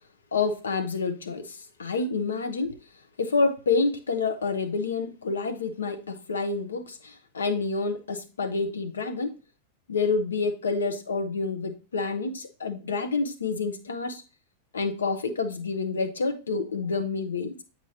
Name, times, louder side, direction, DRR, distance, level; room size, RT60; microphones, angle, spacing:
voice 1, 0.3-2.8 3.2-9.4 9.9-14.2 14.7-17.6, left 4 dB, 70° left, 0.9 m, -28 dB
8.5 x 4.5 x 2.7 m
figure-of-eight pair, 90°, 0 cm